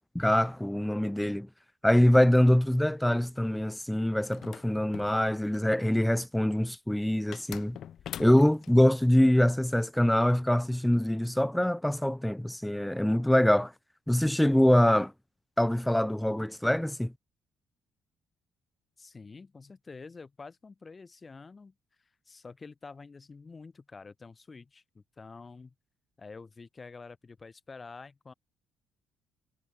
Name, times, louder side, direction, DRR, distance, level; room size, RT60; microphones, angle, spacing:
voice 1, 0.1-1.5 1.8-7.8 8.2-13.7 14.1-15.1 15.6-17.1, left 1 dB, 5° left, 0.6 m, -24 dB
sound 1, 4.3-5.7 7.3-8.7, left 9 dB, 65° left, 2.0 m, -43 dB
voice 2, 19.0-25.7 26.2-28.3, left 4 dB, 35° left, 5.3 m, -48 dB
supercardioid pair, 60°, 0 cm